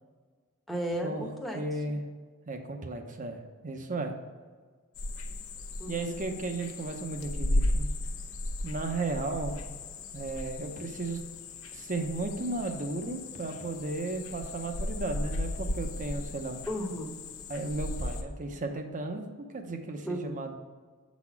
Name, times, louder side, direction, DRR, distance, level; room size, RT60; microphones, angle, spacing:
voice 1, 0.7-1.6 5.8-6.1 16.7-17.1 20.0-20.4, equal, ahead, -1 dB, 0.9 m, -34 dB
voice 2, 1.5-2.0 2.5-4.1 5.9-7.9 8.6-9.6 10.1-11.2 11.7-16.6 17.5-20.6, right 2 dB, 35° right, 5 dB, 0.8 m, -35 dB
sound 1, 5.0-18.2, left 1 dB, 65° left, 0.8 m, -35 dB
7.7 x 4.2 x 5.8 m, 1.5 s
head